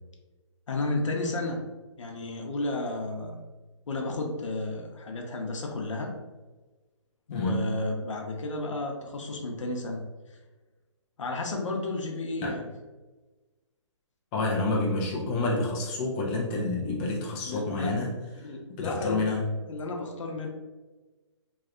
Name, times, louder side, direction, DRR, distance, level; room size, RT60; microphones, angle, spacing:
voice 1, 0.7-1.6 2.0-3.4 3.9-6.1 7.3-10.0 10.3-10.4 11.2-12.6 17.4-18.0 18.4-19.2 19.6-20.5, left 2 dB, 80° left, 2 dB, 0.8 m, -32 dB
voice 2, 7.3-7.7 12.4-12.5 14.3-18.1 18.4-18.5 18.8-19.4, left 2 dB, 15° left, -3 dB, 0.4 m, -28 dB
3.2 x 2.8 x 2.5 m, 1.2 s
hypercardioid pair, 160°, 16 cm